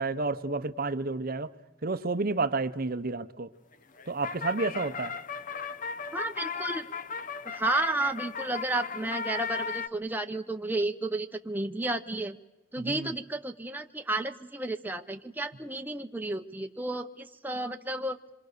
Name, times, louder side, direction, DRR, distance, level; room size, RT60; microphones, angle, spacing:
voice 1, 0.0-1.5 1.8-3.5 4.1-5.1 12.8-13.1, right 3 dB, 45° right, 11 dB, 0.8 m, -30 dB
sound 1, 3.7-9.9, left 5 dB, 40° left, 0.8 m, -36 dB
voice 2, 6.1-6.9 7.4-12.4 12.7-18.2, right 2 dB, 10° right, 5 dB, 0.8 m, -32 dB
27.0 x 23.5 x 6.7 m, 1.1 s
head